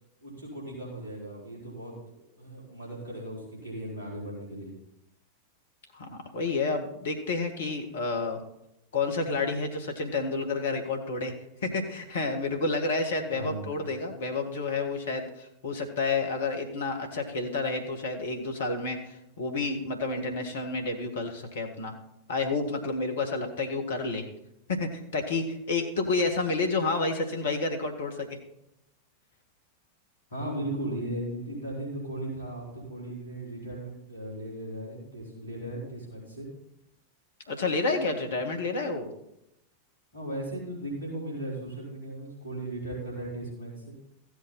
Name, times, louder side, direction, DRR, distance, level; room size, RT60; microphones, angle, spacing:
voice 1, 0.2-4.7 13.3-13.9 30.3-36.5 40.1-43.9, right 1 dB, 80° left, -4 dB, 4.5 m, -37 dB
voice 2, 5.9-8.4 8.9-11.3 11.6-21.9 22.3-24.3 24.7-28.4 37.5-39.1, left 3 dB, 60° left, 4 dB, 1.8 m, -30 dB
15.0 x 8.1 x 4.2 m, 0.80 s
figure-of-eight pair, 90°, 0 cm